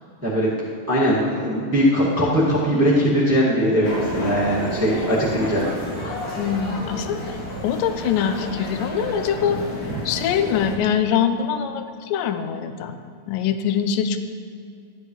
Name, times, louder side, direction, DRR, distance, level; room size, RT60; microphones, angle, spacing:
voice 1, 0.9-5.7 9.9-10.0, equal, 10° right, -7 dB, 0.9 m, -20 dB
sound 1, 3.8-10.8, left 1 dB, 55° left, 2.9 m, -32 dB
voice 2, 6.4-7.4 7.6-9.6 10.1-13.0 13.3-14.2, left 8 dB, 85° left, 9 dB, 2.2 m, -23 dB
14.5 x 10.5 x 3.2 m, 2.2 s
omnidirectional pair, 4.0 m